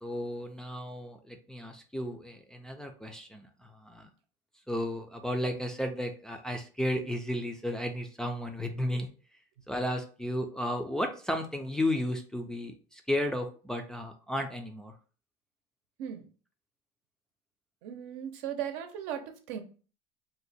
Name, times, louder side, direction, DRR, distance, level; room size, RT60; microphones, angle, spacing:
voice 1, 0.0-4.1 4.7-9.1 9.7-14.9, left 1 dB, 5° left, 2 dB, 0.3 m, -33 dB
voice 2, 17.8-19.6, right 9 dB, 80° right, 5 dB, 0.7 m, -37 dB
2.7 x 2.1 x 4.0 m, 0.38 s
cardioid pair, 130°, 15 cm